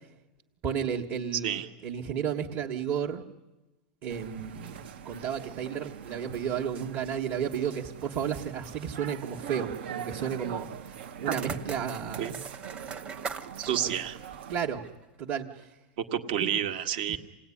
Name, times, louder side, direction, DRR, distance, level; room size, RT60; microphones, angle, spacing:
voice 1, 0.6-3.2 4.0-10.9 11.2-12.4 12.9-13.0 13.4-13.9 14.5-14.8 15.2-15.7 16.4-16.5 17.1-17.2, right 8 dB, 35° right, -1 dB, 1.5 m, -33 dB
voice 2, 1.3-1.7 11.3-11.4 12.2-12.3 13.6-14.2 16.0-17.2, right 10 dB, 60° right, 6 dB, 1.8 m, -29 dB
sound 1, 4.1-14.6, right 8 dB, 75° right, 1.1 m, -43 dB
sound 2, 10.9-15.0, right 5 dB, 20° right, 1.2 m, -42 dB
27.0 x 18.5 x 10.0 m, 1.1 s
supercardioid pair, 145°, 6 cm